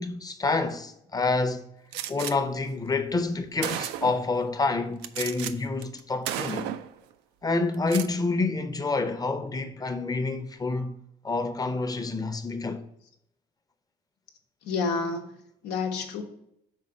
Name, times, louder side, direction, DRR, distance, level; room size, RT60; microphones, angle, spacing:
voice 1, 0.0-1.6 2.1-6.7 7.4-11.0 11.2-12.8, left 3 dB, 20° left, 0.7 m, -28 dB
Gunshot gunfire, 1.9-2.3 3.2-3.3 3.6-4.3 5.0-5.5 5.8-6.0 6.3-6.9 7.7-8.1, right 11 dB, 85° right, 0.4 m, -33 dB
voice 2, 14.6-16.2, left 4 dB, 85° left, 0.9 m, -30 dB
5.5 x 3.6 x 4.8 m
supercardioid pair, 70°, 17 cm